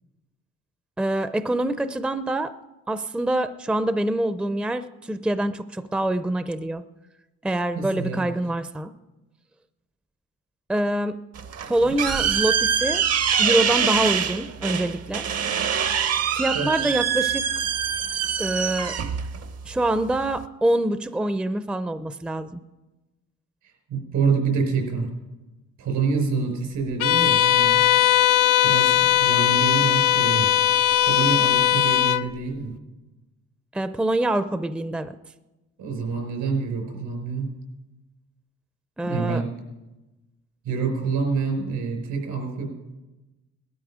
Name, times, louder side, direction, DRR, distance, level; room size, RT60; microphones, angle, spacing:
voice 1, 1.0-2.5 2.9-6.8 7.4-8.9 10.7-11.2 11.7-13.0 13.4-15.3 16.3-17.5 18.4-18.9 19.6-22.6 33.7-35.1 39.0-39.4, right 1 dB, 5° right, 12 dB, 0.5 m, -25 dB
voice 2, 7.7-8.2 16.5-17.0 23.9-25.1 25.8-27.8 28.6-30.5 30.8-32.7 35.8-37.5 39.0-39.5 40.6-42.7, right 5 dB, 80° right, 3 dB, 5.2 m, -27 dB
sound 1, 11.4-20.4, right 7 dB, 55° right, 0.9 m, -25 dB
Bowed string instrument, 27.0-32.3, left 12 dB, 85° left, 0.6 m, -19 dB
18.5 x 12.5 x 5.0 m, 1.1 s
cardioid pair, 90°, 30 cm